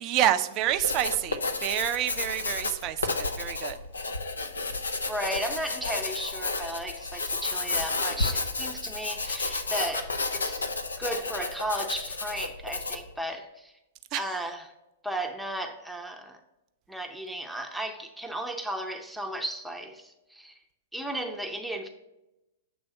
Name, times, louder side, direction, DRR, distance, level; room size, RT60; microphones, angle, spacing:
voice 1, 0.0-3.8 14.1-14.2, right 12 dB, 40° right, 8 dB, 0.5 m, -28 dB
Writing, 0.7-13.1, left 3 dB, 85° left, 0.7 m, -31 dB
voice 2, 5.1-10.7 11.0-13.7 14.1-14.7 15.0-16.4 16.9-20.6 20.9-21.9, right 1 dB, ahead, 3 dB, 0.7 m, -35 dB
7.9 x 3.4 x 5.2 m, 0.92 s
hypercardioid pair, 105°, 0 cm